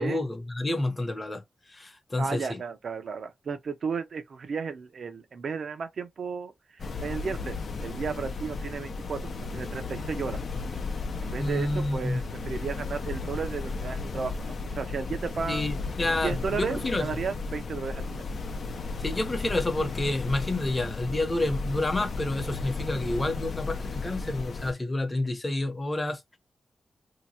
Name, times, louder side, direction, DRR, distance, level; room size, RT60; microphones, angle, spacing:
voice 1, 0.0-1.4 1.7-2.6 11.4-12.2 15.5-17.1 19.0-26.4, left 2 dB, 25° left, 1.0 m, -29 dB
voice 2, 2.2-10.6 11.2-15.7 16.2-18.2, right 5 dB, 70° right, 0.8 m, -34 dB
sound 1, 6.8-24.7, left 4 dB, 65° left, 0.7 m, -34 dB
2.9 x 2.2 x 4.2 m
wide cardioid pair, 125°, 0 cm